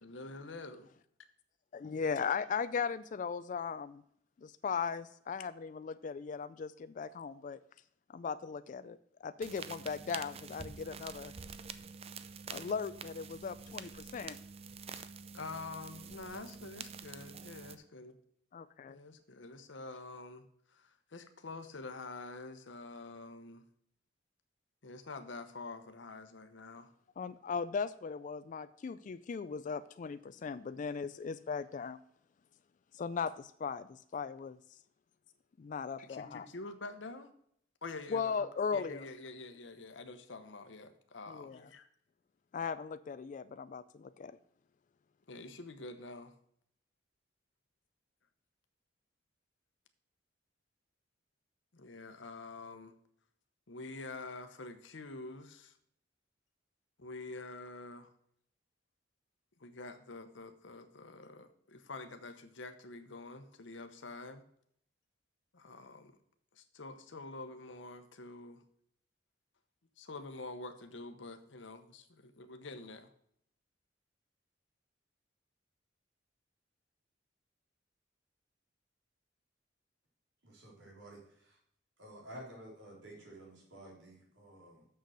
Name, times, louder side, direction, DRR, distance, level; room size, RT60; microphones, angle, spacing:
voice 1, 0.0-0.9 15.3-18.2 18.9-20.5 20.8-23.6 24.8-26.9 36.1-37.3 37.8-38.5 38.7-41.9 45.3-46.3 51.7-52.9 53.7-55.7 57.0-58.1 59.6-64.4 65.5-66.1 66.5-68.6 70.0-73.1, left 3 dB, 85° left, 8 dB, 0.9 m, -47 dB
voice 2, 1.7-4.0 4.4-7.6 8.1-9.0 9.2-11.3 12.5-14.4 18.5-19.0 27.2-32.0 32.9-34.6 35.6-36.5 38.1-39.0 41.3-41.7 42.5-44.4, left 6 dB, 45° left, 13 dB, 0.3 m, -38 dB
sound 1, 9.4-17.7, right 5 dB, 35° right, 0.5 m, -47 dB
voice 3, 80.4-81.6 82.0-84.9, right 1 dB, 90° right, -2 dB, 3.7 m, -52 dB
6.9 x 6.6 x 6.2 m, 0.69 s
head